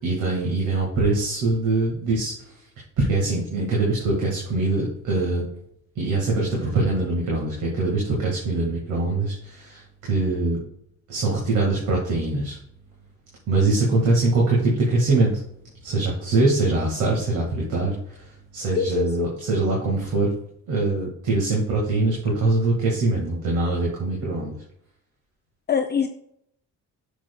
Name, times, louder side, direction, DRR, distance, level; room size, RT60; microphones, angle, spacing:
voice 1, 0.0-2.3 3.0-5.4 6.0-10.6 11.1-12.6 13.5-15.3 15.8-18.3 18.5-20.3 20.7-24.6, right 2 dB, 85° right, -3 dB, 1.8 m, -23 dB
voice 2, 18.8-19.3 25.7-26.1, left 6 dB, 35° left, 5 dB, 0.5 m, -23 dB
10.5 x 6.1 x 2.2 m, 0.72 s
cardioid pair, 90°, 30 cm